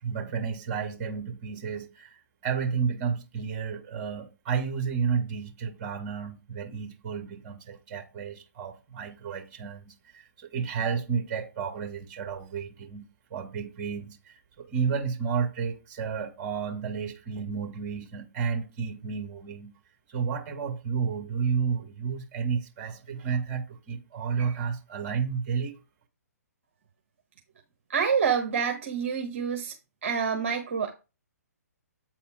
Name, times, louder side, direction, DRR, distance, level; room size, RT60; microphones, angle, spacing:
voice 1, 0.0-2.2 2.4-13.1 13.3-19.7 20.1-25.8, right 6 dB, 35° right, 2.0 m, -31 dB
voice 2, 27.9-29.7 30.0-30.9, right 6 dB, 50° right, 1.4 m, -27 dB
8.6 x 4.2 x 5.2 m
figure-of-eight pair, 130°, 9 cm